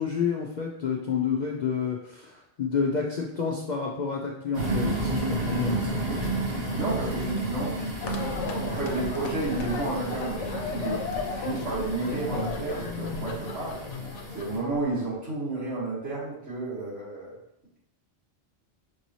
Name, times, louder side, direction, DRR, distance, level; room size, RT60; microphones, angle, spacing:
voice 1, 0.0-5.8, left 6 dB, 60° left, -1 dB, 0.5 m, -29 dB
sound 1, 4.5-14.6, right 2 dB, 55° right, 2.1 m, -32 dB
voice 2, 6.7-7.8 8.6-13.8 14.3-17.4, right 2 dB, 75° right, -8 dB, 2.1 m, -31 dB
sound 2, 8.0-15.2, left 5 dB, 75° left, 0.9 m, -35 dB
5.2 x 2.7 x 3.0 m, 0.77 s
omnidirectional pair, 1.2 m